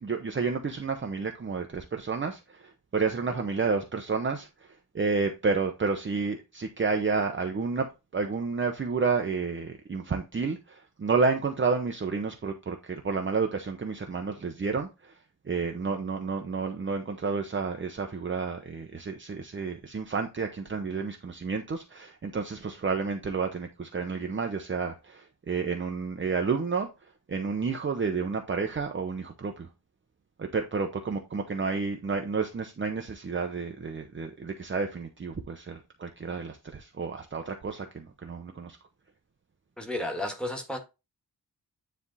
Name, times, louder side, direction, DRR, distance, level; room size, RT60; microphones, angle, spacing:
voice 1, 0.0-15.1 15.5-26.9 27.3-29.7 30.4-38.8, right 4 dB, 30° right, 0.8 m, -30 dB
voice 2, 39.8-40.8, left 1 dB, ahead, 1.8 m, -32 dB
9.7 x 3.5 x 4.1 m
wide cardioid pair, 160°, 38 cm